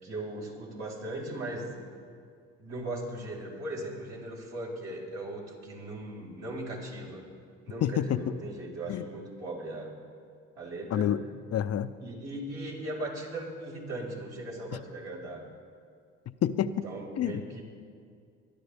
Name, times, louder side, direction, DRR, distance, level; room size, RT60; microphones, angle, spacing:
voice 1, 0.0-1.8 2.6-7.2 7.6-9.9 10.6-11.1 12.0-15.5 16.8-17.6, right 1 dB, 60° right, -3 dB, 4.8 m, -38 dB
voice 2, 7.8-8.3 8.9-9.0 10.9-11.2 11.5-12.0 14.7-14.8 16.3-16.9 17.2-17.4, left 10 dB, 50° left, 13 dB, 0.7 m, -28 dB
25.5 x 11.5 x 3.5 m, 2.3 s
supercardioid pair, 75°, 31 cm